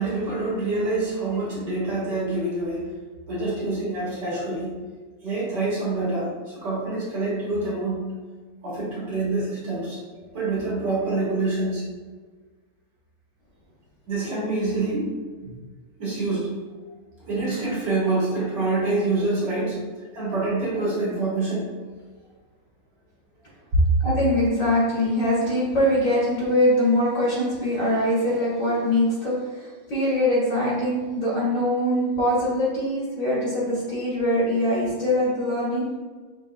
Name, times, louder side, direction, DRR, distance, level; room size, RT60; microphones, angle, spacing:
voice 1, 0.0-2.9 3.3-4.8 5.2-8.0 8.6-10.0 10.3-11.8 14.1-15.1 15.4-15.6 16.0-16.5 17.3-19.8 20.1-21.7 23.7-23.8, right 2 dB, 55° right, -7 dB, 1.9 m, -26 dB
voice 2, 24.0-36.0, left 1 dB, 45° left, -7 dB, 1.6 m, -23 dB
5.8 x 3.6 x 2.4 m, 1.4 s
omnidirectional pair, 2.3 m